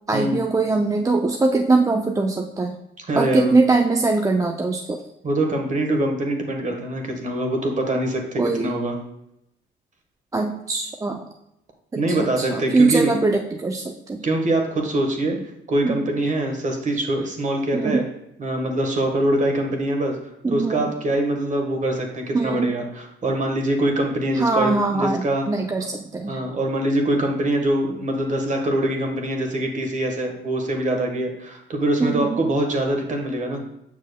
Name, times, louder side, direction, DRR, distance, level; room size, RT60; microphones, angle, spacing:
voice 1, 0.1-2.8 3.1-5.0 8.4-8.7 10.3-11.2 11.9-14.2 15.8-16.0 17.7-18.0 20.4-20.9 22.3-22.7 24.3-26.4 32.0-32.4, right 3 dB, 15° right, 3 dB, 0.4 m, -22 dB
voice 2, 3.0-3.5 5.2-9.0 11.9-13.1 14.2-15.4 15.7-18.0 18.4-20.2 20.5-25.5 26.3-33.6, right 1 dB, 40° right, 3 dB, 1.3 m, -23 dB
7.2 x 6.2 x 2.2 m, 0.81 s
cardioid pair, 90°, 20 cm